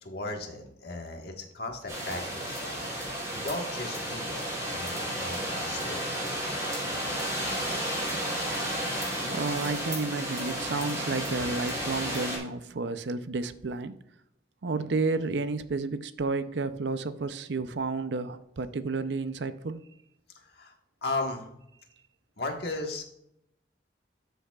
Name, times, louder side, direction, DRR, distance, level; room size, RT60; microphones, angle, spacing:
voice 1, 0.0-2.8 3.3-4.4 4.7-6.3 20.5-20.7 21.0-21.5 22.4-23.0, left 2 dB, 60° left, 1.5 m, -36 dB
sound 1, 1.9-12.4, equal, 20° right, 3.7 m, -32 dB
voice 2, 9.3-13.9 14.6-19.8, right 3 dB, 75° right, 0.6 m, -31 dB
13.0 x 6.9 x 2.4 m
head